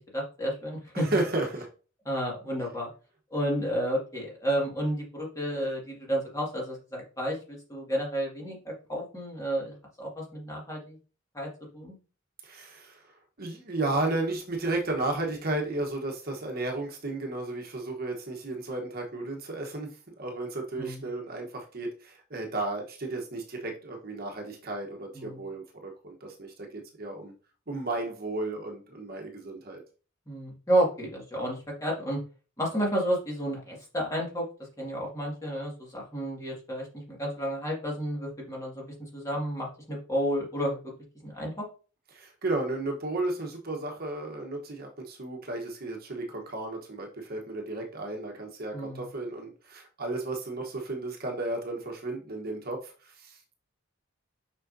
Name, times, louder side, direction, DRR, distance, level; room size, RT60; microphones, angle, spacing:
voice 1, 0.1-1.1 2.1-2.9 3.3-11.0 11.3-11.9 20.8-21.0 25.1-25.4 30.3-32.2 32.6-34.4 34.8-38.9 39.1-40.9 41.2-41.7 48.7-49.0, equal, 15° left, -3 dB, 2.1 m, -31 dB
voice 2, 0.9-1.7 12.4-27.3 27.7-29.8 42.1-53.4, right 2 dB, 45° right, 2 dB, 1.2 m, -33 dB
6.5 x 5.6 x 2.7 m, 0.35 s
head